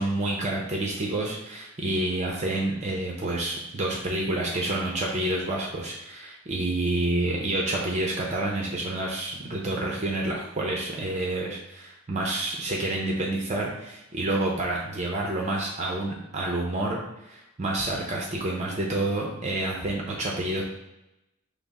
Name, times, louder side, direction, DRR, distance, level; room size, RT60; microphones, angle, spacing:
voice 1, 0.0-20.6, right 2 dB, 35° right, -1 dB, 0.6 m, -28 dB
5.7 x 2.0 x 4.0 m, 0.92 s
head